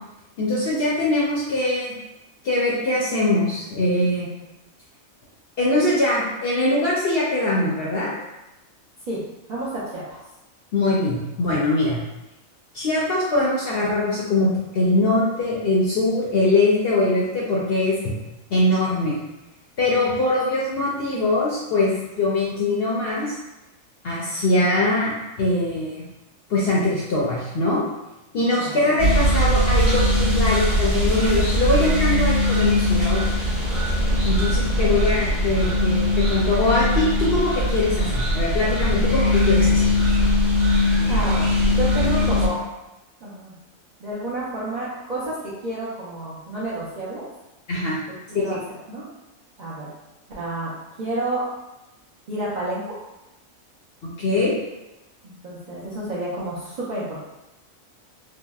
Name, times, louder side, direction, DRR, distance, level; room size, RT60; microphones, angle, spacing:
voice 1, 0.4-1.9 2.4-4.3 5.6-8.1 10.7-12.0 12.7-18.1 18.5-19.1 19.8-23.4 24.0-26.0 26.5-27.8 28.3-33.5 34.2-39.9 47.7-48.0 48.5-48.6 54.2-54.6, left 2 dB, 65° left, -5 dB, 0.6 m, -22 dB
voice 2, 9.5-10.2 28.5-28.8 41.1-42.6 43.2-43.5 44.0-47.2 48.3-48.6 48.9-49.0 49.6-49.9 50.4-50.7 51.0-51.4 52.3-53.0 55.2-57.2, right 2 dB, 60° right, -9 dB, 0.4 m, -30 dB
sound 1, 29.0-42.5, left 1 dB, 25° right, 0.7 m, -20 dB
3.5 x 2.0 x 2.3 m, 0.97 s
omnidirectional pair, 1.4 m